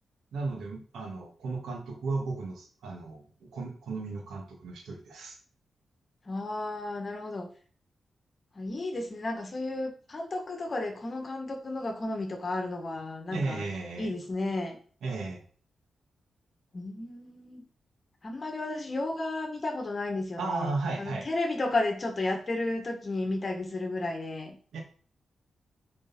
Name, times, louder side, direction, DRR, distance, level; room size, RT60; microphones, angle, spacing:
voice 1, 0.3-5.4 13.3-14.1 15.0-15.4 20.4-21.3 24.7-24.8, right 3 dB, 85° right, 1 dB, 2.7 m, -35 dB
voice 2, 6.3-7.5 8.6-13.6 14.0-14.8 16.7-17.7 18.2-20.7 21.0-24.6, left 2 dB, 40° left, 3 dB, 2.0 m, -33 dB
7.8 x 5.0 x 6.3 m, 0.44 s
cardioid pair, 70°, 0 cm